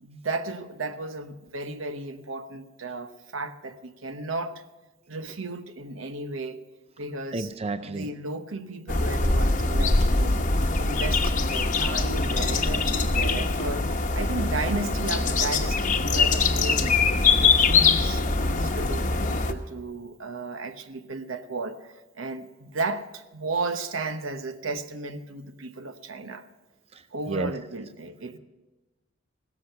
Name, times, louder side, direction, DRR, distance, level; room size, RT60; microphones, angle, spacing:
voice 1, 0.0-4.6 5.1-6.6 7.0-7.5 7.8-10.5 10.8-16.9 17.3-26.4 27.1-28.4, right 3 dB, 75° right, 1.0 m, -34 dB
voice 2, 7.3-8.1 26.9-27.5, right 3 dB, 30° right, 0.5 m, -32 dB
sound 1, 8.9-19.5, left 3 dB, 40° left, 1.0 m, -23 dB
16.0 x 13.5 x 5.7 m
head